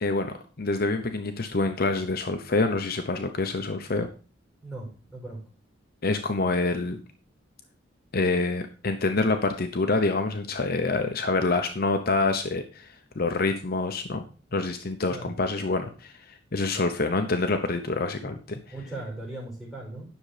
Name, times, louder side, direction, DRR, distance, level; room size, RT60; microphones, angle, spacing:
voice 1, 0.0-4.1 6.0-7.0 8.1-12.9 13.2-14.2 14.5-16.1 16.5-18.6, left 3 dB, 50° left, 6 dB, 0.8 m, -26 dB
voice 2, 4.6-5.4 15.1-15.3 18.7-20.1, right 2 dB, ahead, -4 dB, 5.6 m, -38 dB
10.5 x 6.6 x 5.0 m, 0.37 s
head